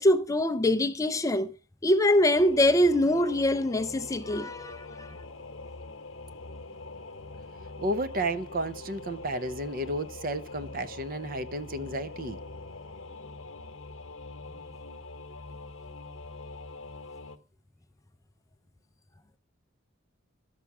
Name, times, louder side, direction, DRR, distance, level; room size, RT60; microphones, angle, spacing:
voice 1, 0.0-1.6 1.8-5.2, left 1 dB, 15° left, 0.4 m, -24 dB
Singing / Musical instrument, 2.3-17.4, left 3 dB, 70° left, 0.9 m, -43 dB
voice 2, 7.8-12.4, right 1 dB, 45° right, 0.7 m, -32 dB
12.5 x 5.9 x 5.9 m
head